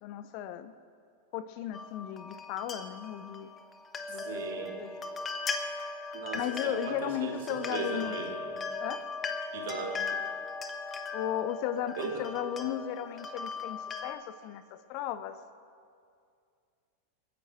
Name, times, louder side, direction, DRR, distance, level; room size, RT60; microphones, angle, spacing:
voice 1, 0.0-0.7 1.3-3.5 4.1-4.9 6.3-8.2 8.8-9.1 11.1-15.4, left 10 dB, 45° left, 13 dB, 0.8 m, -36 dB
sound 1, 1.7-14.2, left 4 dB, 20° left, 1.3 m, -38 dB
voice 2, 4.2-4.8 6.1-8.4 9.5-10.0 12.0-12.2, right 5 dB, 55° right, 0 dB, 3.1 m, -37 dB
29.0 x 10.5 x 4.5 m, 2.3 s
figure-of-eight pair, 90°, 0 cm